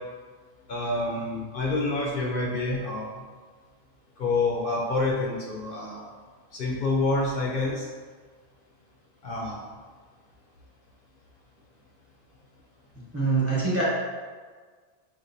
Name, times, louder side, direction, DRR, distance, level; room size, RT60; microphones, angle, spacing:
voice 1, 0.7-3.1 4.2-6.0 6.5-7.9 9.2-9.6, left 2 dB, 60° left, -3 dB, 0.8 m, -27 dB
voice 2, 13.1-13.8, right 4 dB, 15° right, -8 dB, 0.9 m, -24 dB
5.1 x 2.6 x 2.6 m, 1.5 s
omnidirectional pair, 1.0 m